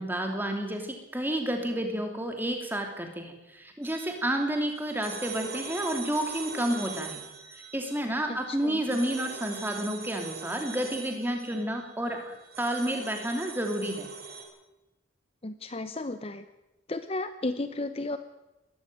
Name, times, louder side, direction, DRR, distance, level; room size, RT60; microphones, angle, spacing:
voice 1, 0.0-7.2 7.7-14.1, right 1 dB, 10° right, 4 dB, 3.0 m, -30 dB
sound 1, 3.8-14.4, right 5 dB, 50° right, 4.4 m, -42 dB
voice 2, 8.3-9.0 15.4-16.4 16.9-18.2, left 2 dB, 30° left, 11 dB, 0.7 m, -34 dB
20.5 x 14.0 x 9.2 m, 1.0 s
head